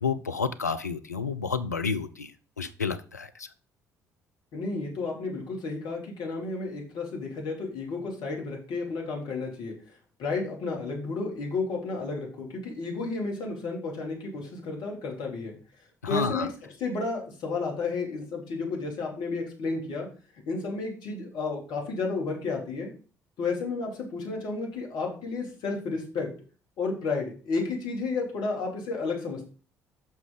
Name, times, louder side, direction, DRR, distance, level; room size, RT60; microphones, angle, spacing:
voice 1, 0.0-2.3 2.6-3.5 16.0-16.5, left 5 dB, 90° left, 9 dB, 0.5 m, -30 dB
voice 2, 4.5-9.7 10.2-15.6 16.1-16.5 16.8-20.1 20.5-22.9 23.4-26.3 26.8-29.5, left 3 dB, 55° left, 0 dB, 2.9 m, -32 dB
8.6 x 6.1 x 3.9 m, 0.37 s
figure-of-eight pair, 50°, 9 cm